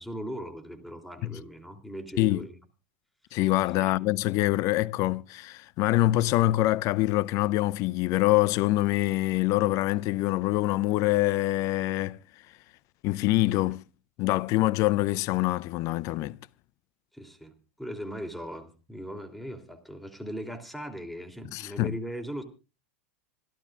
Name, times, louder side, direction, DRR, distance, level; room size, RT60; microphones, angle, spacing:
voice 1, 0.0-2.6 3.8-3.9 17.1-22.4, equal, ahead, 3.1 m, -39 dB
voice 2, 3.3-12.2 13.0-13.8 14.2-16.4 21.5-21.9, left 17 dB, 50° left, 0.7 m, -25 dB
26.5 x 12.0 x 2.5 m
hypercardioid pair, 90°, 7 cm